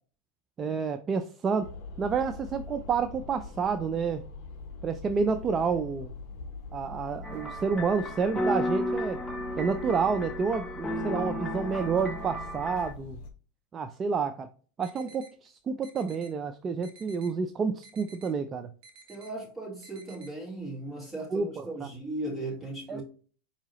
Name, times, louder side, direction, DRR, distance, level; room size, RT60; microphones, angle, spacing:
voice 1, 0.6-1.7 2.0-4.2 4.8-6.1 6.7-9.2 9.6-13.2 13.7-14.5 14.8-18.7 21.3-21.9 22.9-23.0, right 5 dB, 30° right, 0.3 m, -29 dB
sound 1, 1.6-13.3, left 3 dB, 55° left, 0.7 m, -43 dB
sound 2, 7.2-12.9, equal, 10° left, 0.8 m, -33 dB
sound 3, 14.8-15.3 15.8-16.3 16.8-17.3 17.8-18.3 18.8-19.3 19.8-20.3, right 3 dB, 60° right, 0.9 m, -52 dB
voice 2, 19.1-23.0, right 2 dB, 5° right, 1.8 m, -37 dB
4.7 x 2.8 x 2.9 m
hypercardioid pair, 105°, 0 cm